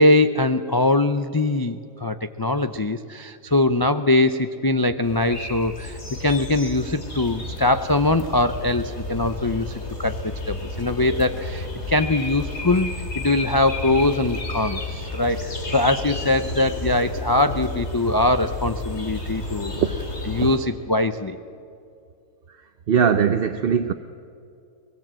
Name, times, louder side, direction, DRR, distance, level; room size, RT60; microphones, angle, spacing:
voice 1, 0.0-9.7 10.0-12.9 13.2-19.7 20.3-21.4, left 2 dB, 30° left, 0.4 m, -22 dB
sound 1, 5.0-20.6, left 2 dB, 50° left, 3.1 m, -32 dB
voice 2, 19.7-20.1 22.9-23.9, right 7 dB, 50° right, 0.8 m, -20 dB
24.5 x 20.5 x 7.5 m
omnidirectional pair, 1.4 m